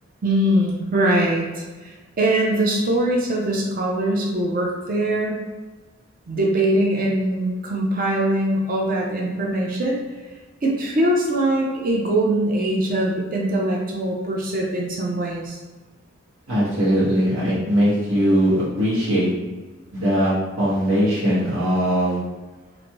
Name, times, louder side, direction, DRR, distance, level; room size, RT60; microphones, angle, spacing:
voice 1, 0.2-5.4 6.3-10.0 10.6-15.6, right 1 dB, 45° right, -2 dB, 0.5 m, -22 dB
voice 2, 16.5-19.3 19.9-22.2, equal, 80° right, -10 dB, 1.5 m, -20 dB
3.1 x 2.5 x 2.9 m, 1.3 s
head